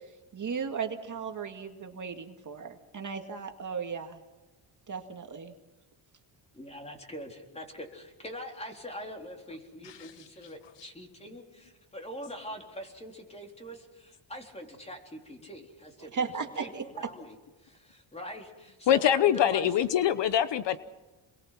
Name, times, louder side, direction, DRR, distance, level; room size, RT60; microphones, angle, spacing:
voice 1, 0.3-4.2 4.9-5.5 16.1-16.8, right 6 dB, 40° right, 4 dB, 2.2 m, -36 dB
voice 2, 6.5-16.3 16.6-17.4 17.6-19.8, equal, 15° left, 2 dB, 4.0 m, -43 dB
voice 3, 18.9-20.8, left 10 dB, 60° left, 13 dB, 1.0 m, -24 dB
29.5 x 22.5 x 6.0 m, 1.2 s
cardioid pair, 135°, 48 cm